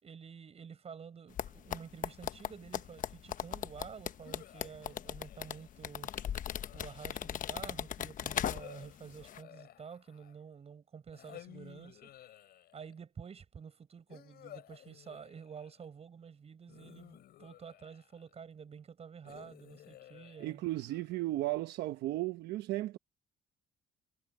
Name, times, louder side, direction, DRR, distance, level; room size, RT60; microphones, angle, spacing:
voice 1, 0.0-6.1 6.7-12.3 12.7-20.6, right 6 dB, 35° right, 6.6 m, -50 dB
sound 1, 1.4-8.9 9.2-9.4, left 10 dB, 50° left, 1.0 m, -38 dB
sound 2, 4.2-5.8 6.5-7.4 8.3-10.5 11.1-13.0 14.1-15.9 16.7-18.3 19.2-21.2, left 12 dB, 65° left, 5.6 m, -55 dB
voice 2, 20.4-23.0, right 17 dB, 80° right, 1.0 m, -35 dB
cardioid pair, 110°, 17 cm